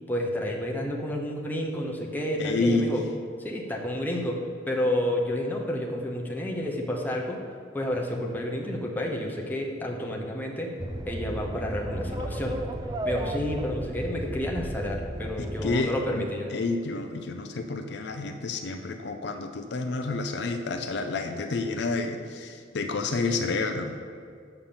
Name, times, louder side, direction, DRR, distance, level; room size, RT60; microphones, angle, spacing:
voice 1, 0.1-3.0 3.4-4.4 4.7-7.4 7.7-10.7 11.0-12.6 13.0-16.5, left 1 dB, 10° left, -1 dB, 0.9 m, -30 dB
voice 2, 2.4-2.9 15.4-16.2 16.5-24.1, left 3 dB, 60° left, 6 dB, 0.5 m, -29 dB
sound 1, 10.8-15.8, right 1 dB, 20° right, 0.4 m, -33 dB
7.0 x 5.7 x 6.9 m, 2.3 s
head